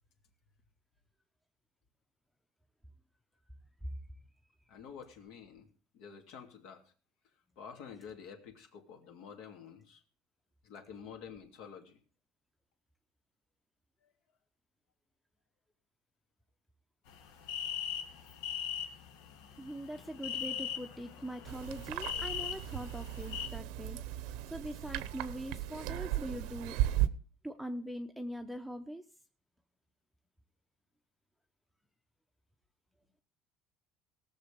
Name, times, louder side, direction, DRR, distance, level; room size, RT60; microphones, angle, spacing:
voice 1, 4.7-5.7 5.9-6.8 7.6-10.0 10.6-12.0 14.0-14.1, left 7 dB, 70° left, 4 dB, 2.7 m, -49 dB
sound 1, 17.1-23.5, left 8 dB, 85° left, 1.8 m, -40 dB
voice 2, 19.6-24.1 24.5-26.8 27.4-29.0, right 1 dB, ahead, 5 dB, 0.7 m, -42 dB
sound 2, 21.4-27.1, right 13 dB, 80° right, 0.8 m, -36 dB
18.0 x 6.7 x 5.2 m, 0.39 s
cardioid pair, 145°, 0 cm